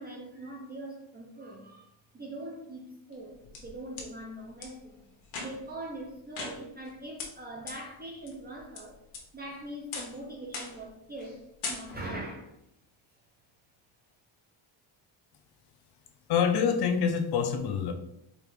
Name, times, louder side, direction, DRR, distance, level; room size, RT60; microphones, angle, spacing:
voice 1, 0.0-5.1 5.4-9.0 9.3-12.6, right 1 dB, 20° right, -1 dB, 0.4 m, -42 dB
sound 1, 3.1-4.1 4.6-4.7 5.2-5.8 6.3-6.9 7.2-7.3 7.7-7.8 8.3-8.8 9.1-9.5 9.9-10.2 10.5-10.9 11.2-11.3 11.6-12.2, left 4 dB, 80° left, 1.1 m, -39 dB
voice 2, 16.3-17.9, left 7 dB, 55° left, 6 dB, 0.5 m, -26 dB
4.9 x 2.4 x 3.2 m, 0.79 s
cardioid pair, 170°, 49 cm